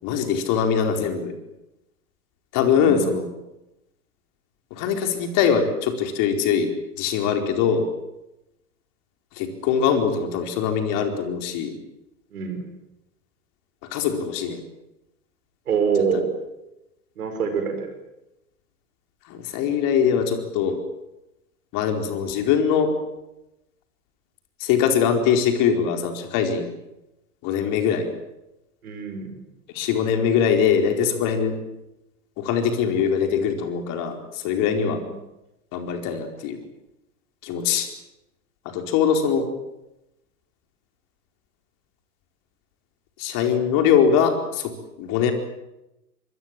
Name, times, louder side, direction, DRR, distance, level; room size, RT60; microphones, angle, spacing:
voice 1, 0.0-1.3 2.5-3.3 4.7-6.7 7.0-7.8 9.4-11.8 13.9-14.6 16.1-16.2 19.3-20.8 21.7-22.9 24.6-26.7 27.4-28.1 29.7-31.6 32.4-35.0 35.7-36.6 37.4-37.9 38.6-39.4 43.2-44.7 45.0-45.3, left 7 dB, 45° left, 5 dB, 4.6 m, -22 dB
voice 2, 15.7-16.3 17.2-17.9 28.8-29.4 34.8-35.1, right 6 dB, 70° right, 6 dB, 5.8 m, -25 dB
27.0 x 22.0 x 7.7 m, 0.92 s
figure-of-eight pair, 95°, 46 cm